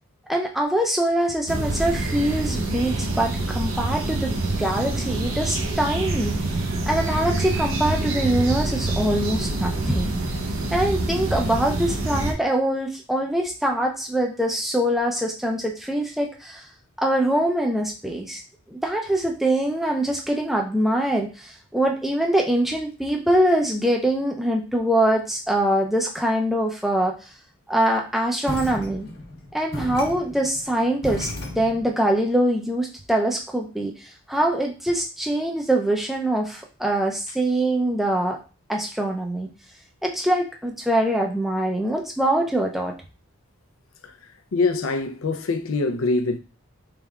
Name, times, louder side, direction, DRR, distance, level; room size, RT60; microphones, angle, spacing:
voice 1, 0.3-6.4 6.9-10.1 10.7-16.7 17.0-18.4 18.7-27.2 27.7-29.1 29.5-33.9 34.3-38.4 38.7-39.5 40.0-42.9, right 1 dB, ahead, 0.5 m, -23 dB
sound 1, 1.5-12.3, right 2 dB, 65° right, 0.7 m, -26 dB
sound 2, 28.4-31.9, left 1 dB, 45° left, 1.0 m, -34 dB
voice 2, 44.5-46.4, left 3 dB, 70° left, 0.5 m, -24 dB
4.1 x 3.5 x 2.3 m
head